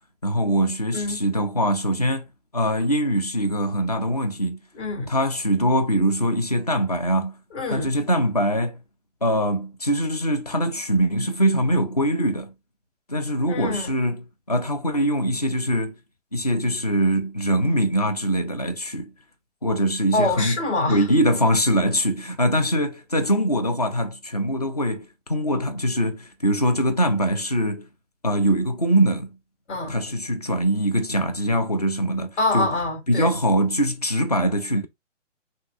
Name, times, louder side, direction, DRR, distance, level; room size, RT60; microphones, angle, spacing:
voice 1, 0.2-2.3 2.5-4.6 5.1-7.4 7.7-8.8 9.2-12.5 13.1-16.0 16.3-19.1 19.6-20.6 20.9-27.9 28.2-29.3 29.9-32.7 33.1-34.9, equal, 35° left, 0.4 m, -23 dB
voice 2, 4.7-5.1 7.5-7.9 13.5-14.0 20.1-21.1 29.7-30.0 32.4-33.3, left 2 dB, 60° left, 2.7 m, -25 dB
5.7 x 2.7 x 2.5 m
hypercardioid pair, 175°, 38 cm